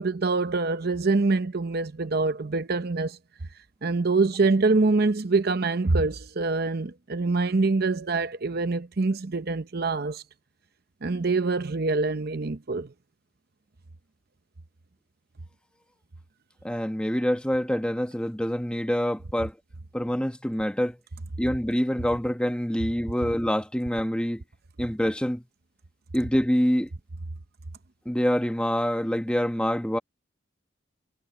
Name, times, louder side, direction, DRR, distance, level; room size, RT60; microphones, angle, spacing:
voice 1, 0.0-3.2 3.8-10.2 11.0-12.9, right 3 dB, 55° right, 0.8 m, -25 dB
voice 2, 16.6-19.5 19.9-21.0 21.4-24.4 24.8-25.4 26.1-26.9 28.0-30.0, equal, 5° left, 1.2 m, -26 dB
head